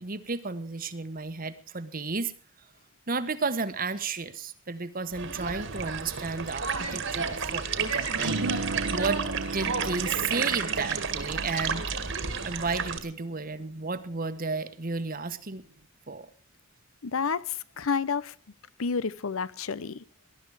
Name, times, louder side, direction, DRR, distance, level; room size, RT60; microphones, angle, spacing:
voice 1, 0.0-2.3 3.1-8.4 8.9-9.2 9.5-11.8 12.4-15.6 16.1-16.3, right 4 dB, 40° right, 12 dB, 1.2 m, -33 dB
sound 1, 5.1-13.0, right 5 dB, 60° right, 2.1 m, -31 dB
sound 2, 8.1-14.7, right 2 dB, 75° right, 1.1 m, -37 dB
voice 2, 17.0-18.3 18.8-20.0, left 5 dB, 75° left, 18 dB, 0.7 m, -30 dB
19.5 x 12.0 x 4.8 m, 0.42 s
head